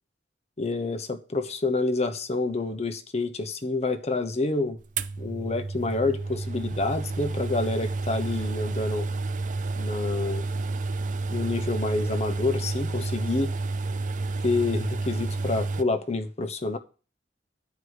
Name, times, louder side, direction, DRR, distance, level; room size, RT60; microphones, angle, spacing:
voice 1, 0.6-4.8 5.2-9.1 9.8-10.5 11.3-13.5 14.4-16.8, left 3 dB, 40° left, 1.0 m, -28 dB
sound 1, 5.0-15.8, right 3 dB, 45° right, 0.5 m, -30 dB
10.5 x 4.8 x 8.1 m
head